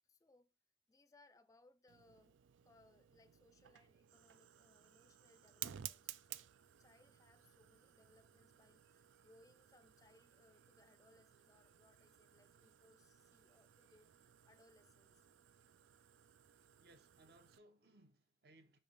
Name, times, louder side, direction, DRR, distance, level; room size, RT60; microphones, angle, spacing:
voice 1, 0.0-0.5 0.9-2.4 2.6-6.5 6.8-15.3, left 2 dB, 20° left, 0.4 m, -70 dB
Fire, 1.9-17.6, right 11 dB, 85° right, 0.4 m, -56 dB
voice 2, 16.8-18.8, right 1 dB, 55° right, 0.8 m, -66 dB
5.6 x 3.3 x 5.3 m
head